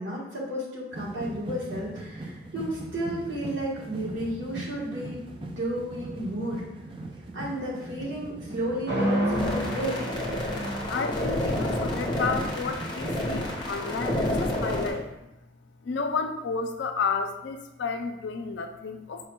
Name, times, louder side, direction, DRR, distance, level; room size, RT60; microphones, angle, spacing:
voice 1, 0.0-5.2 5.6-6.6 7.3-10.0, right 1 dB, 75° right, -4 dB, 1.3 m, -32 dB
sound 1, 0.9-14.4, right 2 dB, 25° right, 0.4 m, -41 dB
sound 2, 8.9-14.9, equal, 55° right, 1.0 m, -32 dB
sound 3, 9.3-14.9, left 1 dB, 25° left, 0.7 m, -30 dB
voice 2, 10.9-15.3 15.8-19.3, left 4 dB, 70° left, 6 dB, 0.4 m, -32 dB
4.8 x 2.2 x 4.3 m, 0.94 s
head